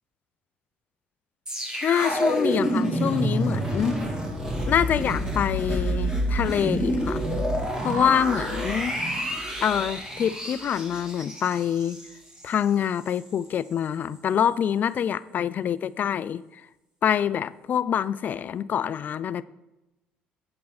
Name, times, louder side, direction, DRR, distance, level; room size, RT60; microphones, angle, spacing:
sound 1, 1.5-12.6 13.0-13.1, equal, 15° right, 2.3 m, -28 dB
voice 1, 1.8-4.0 4.7-7.3 7.8-9.0 9.6-12.0 12.4-16.6 17.0-19.4, left 9 dB, 50° left, 18 dB, 0.4 m, -26 dB
8.5 x 7.6 x 4.0 m, 0.98 s
supercardioid pair, 75°, 4 cm